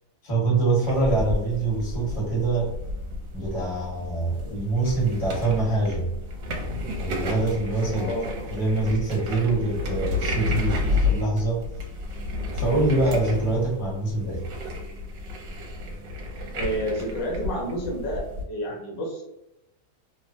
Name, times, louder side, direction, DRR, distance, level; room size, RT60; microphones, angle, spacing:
voice 1, 0.2-2.7 3.3-6.1 7.0-8.1 8.5-11.6 12.5-14.4, right 3 dB, 25° left, -5 dB, 0.9 m, -25 dB
sound 1, 0.8-18.4, left 2 dB, 75° right, 1.3 m, -31 dB
voice 2, 7.9-8.5 16.5-19.2, equal, 75° left, -1 dB, 1.3 m, -30 dB
3.2 x 2.1 x 2.5 m, 0.88 s
omnidirectional pair, 2.1 m